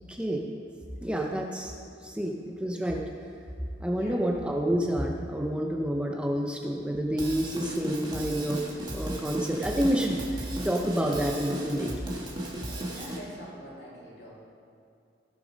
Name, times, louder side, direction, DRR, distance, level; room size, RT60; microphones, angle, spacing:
voice 1, 0.1-0.4 1.0-1.7 2.0-3.0 3.8-8.6 8.9-12.1, equal, 5° right, 0 dB, 0.7 m, -29 dB
voice 2, 3.8-4.2 12.5-14.4, equal, 65° left, -5 dB, 3.2 m, -45 dB
Drum kit / Drum, 7.2-13.2, right 1 dB, 25° right, 1.7 m, -35 dB
16.5 x 6.7 x 5.2 m, 2.4 s
head